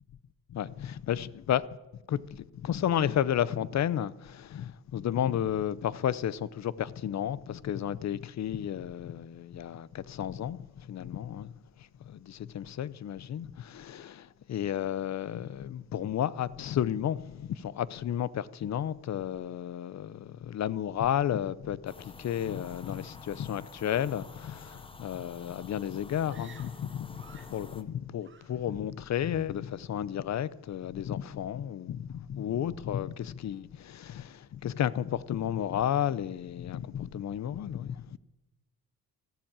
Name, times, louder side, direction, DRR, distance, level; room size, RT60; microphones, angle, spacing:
voice 1, 0.5-1.6 2.1-11.5 12.0-38.2, left 10 dB, 50° left, 0.6 m, -32 dB
sound 1, 21.9-27.8, left 3 dB, 15° left, 0.7 m, -49 dB
Screaming, 26.2-27.7 28.2-28.9 29.1-29.6, right 6 dB, 30° right, 1.1 m, -56 dB
13.5 x 12.0 x 8.8 m
wide cardioid pair, 155°, 36 cm